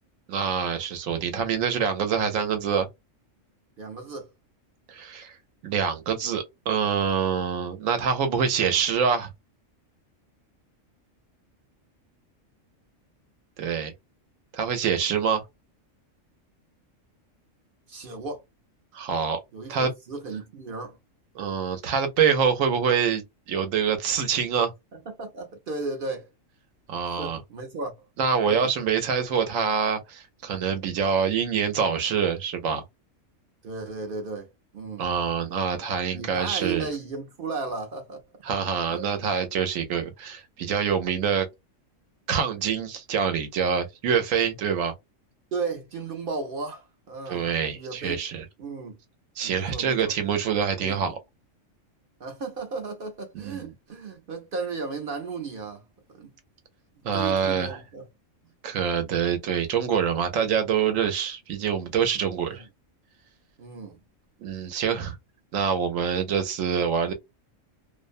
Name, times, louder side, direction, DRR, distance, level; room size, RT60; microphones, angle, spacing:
voice 1, 0.3-2.9 4.9-5.3 5.6-9.3 13.6-13.9 14.5-15.4 18.9-19.4 19.7-19.9 21.3-24.7 26.9-27.4 28.2-32.8 35.0-36.9 38.4-41.5 42.3-44.9 47.3-48.4 49.4-51.2 53.4-53.7 57.0-57.8 58.6-62.6 64.4-65.2 65.5-67.1, right 7 dB, 80° right, 1.1 m, -25 dB
voice 2, 3.8-4.3 17.9-18.4 19.5-21.0 24.9-26.3 27.1-27.9 28.4-28.7 33.6-35.1 36.1-38.2 38.9-39.0 45.5-48.2 48.6-49.0 49.4-50.1 50.8-51.1 52.2-55.8 56.1-56.3 57.1-58.1 62.5-62.6 63.6-64.0, right 4 dB, 55° right, 0.7 m, -35 dB
2.6 x 2.1 x 2.4 m
omnidirectional pair, 1.3 m